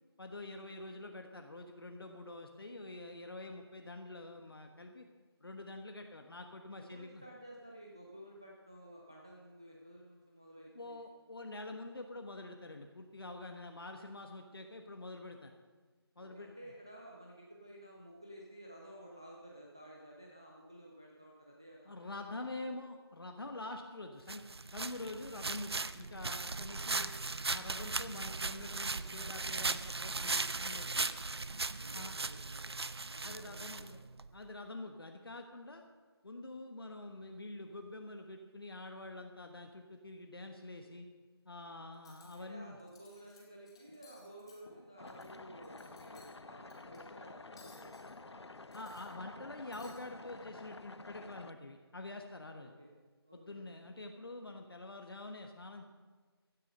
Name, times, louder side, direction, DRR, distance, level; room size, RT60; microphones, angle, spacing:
voice 1, 0.2-5.1 5.4-7.2 10.7-15.5 16.2-16.5 21.9-27.1 27.5-31.1 31.9-32.1 33.2-34.0 34.3-35.8 36.2-41.1 41.4-42.8 48.7-52.7 53.3-55.9, left 2 dB, 60° left, 4 dB, 1.3 m, -46 dB
voice 2, 6.8-11.0 16.2-22.6 31.8-33.8 40.8-40.9 41.8-41.9 42.3-48.5 52.5-52.9 53.2-53.9, right 1 dB, 10° right, -2 dB, 0.4 m, -54 dB
sound 1, 24.3-34.3, right 3 dB, 70° right, 0.7 m, -38 dB
Cutlery silverware, 41.9-42.4 42.8-43.4 43.7-45.3 45.6-46.3 46.7-47.0 47.6-48.1 48.6-49.4 49.7-50.0, left 3 dB, 10° left, 1.0 m, -60 dB
sound 2, 45.0-51.5, left 3 dB, 85° left, 0.7 m, -51 dB
15.5 x 9.9 x 5.4 m, 1.4 s
figure-of-eight pair, 170°, 14 cm